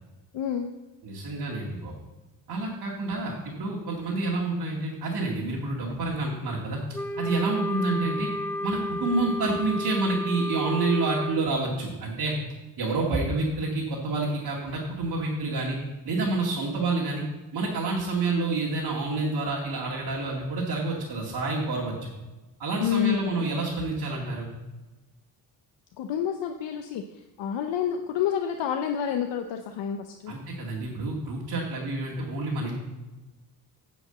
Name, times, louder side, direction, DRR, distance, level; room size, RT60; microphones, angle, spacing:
voice 1, 0.3-0.7 22.8-23.3 26.0-27.0 27.4-30.3, left 9 dB, 75° left, 5 dB, 0.8 m, -28 dB
voice 2, 1.0-1.9 2.5-6.8 7.2-8.3 8.6-12.3 12.8-15.8 16.1-17.2 17.5-22.1 22.6-24.5 30.3-32.8, right 3 dB, 55° right, -4 dB, 2.1 m, -28 dB
Wind instrument woodwind instrument, 6.9-11.4, left 1 dB, 5° left, 0.8 m, -32 dB
9.5 x 5.3 x 7.7 m, 1.2 s
cardioid pair, 115°, 43 cm